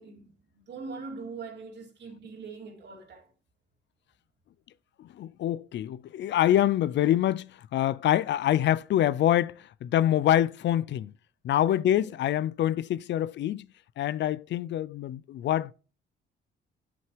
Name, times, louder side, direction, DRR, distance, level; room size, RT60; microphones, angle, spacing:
voice 1, 0.0-3.3 12.0-12.1, right 4 dB, 60° right, 3.0 m, -42 dB
voice 2, 5.0-11.1 11.4-13.7 14.0-15.7, left 12 dB, 65° left, 0.5 m, -25 dB
8.4 x 7.8 x 3.3 m
cardioid pair, 90°, 20 cm